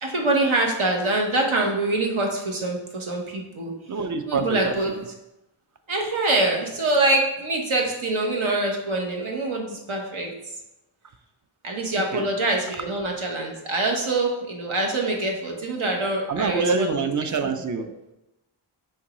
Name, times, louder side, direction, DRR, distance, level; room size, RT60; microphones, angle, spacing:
voice 1, 0.0-3.7 4.3-4.9 5.9-10.3 11.6-17.1, right 2 dB, 75° right, 1 dB, 1.0 m, -24 dB
voice 2, 3.9-5.0 11.9-12.3 16.3-17.9, right 4 dB, 40° right, 8 dB, 0.4 m, -26 dB
4.5 x 3.6 x 3.0 m, 0.92 s
cardioid pair, 45°, 49 cm